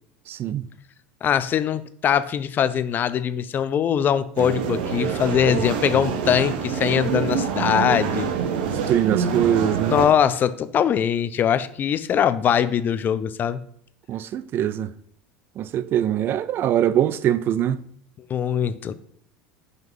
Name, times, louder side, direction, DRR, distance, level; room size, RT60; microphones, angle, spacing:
voice 1, 0.3-0.7 8.9-9.9 14.1-14.9 15.6-17.8, right 10 dB, 45° right, 0.5 m, -22 dB
voice 2, 1.2-8.3 9.9-13.6 18.3-18.9, left 9 dB, 40° left, 0.6 m, -22 dB
sound 1, 4.4-10.1, right 6 dB, 75° right, 1.0 m, -26 dB
6.2 x 5.3 x 5.4 m
hypercardioid pair, 85°, 5 cm